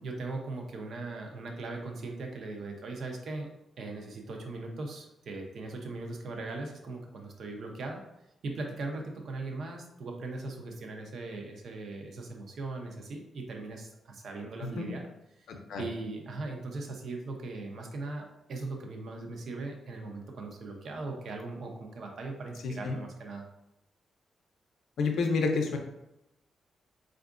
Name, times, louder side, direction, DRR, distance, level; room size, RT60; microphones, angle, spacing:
voice 1, 0.0-3.5 3.8-8.0 8.4-15.0 15.4-15.5 15.8-23.5, right 3 dB, 55° right, 2 dB, 0.5 m, -39 dB
voice 2, 15.5-15.9 22.6-23.0 25.0-25.8, left 4 dB, 75° left, 3 dB, 0.5 m, -29 dB
4.4 x 2.4 x 2.4 m, 0.87 s
wide cardioid pair, 170°, 0 cm